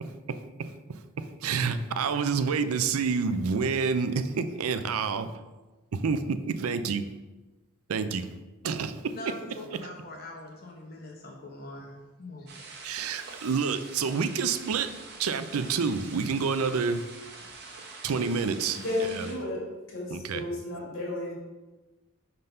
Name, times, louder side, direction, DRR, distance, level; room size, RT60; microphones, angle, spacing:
voice 1, 0.0-5.3 5.9-7.0 7.9-8.3 8.6-9.2 12.8-14.9 15.2-17.0 18.0-18.8 19.2-19.3 20.1-20.4, right 5 dB, 85° right, 11 dB, 0.5 m, -28 dB
voice 2, 9.1-12.5, left 1 dB, 45° left, -1 dB, 0.8 m, -42 dB
sound 1, 12.5-19.3, right 3 dB, 50° right, 0.9 m, -45 dB
voice 3, 18.7-19.6 19.9-21.3, left 2 dB, 70° left, -4 dB, 2.3 m, -33 dB
5.4 x 3.9 x 5.5 m, 1.2 s
head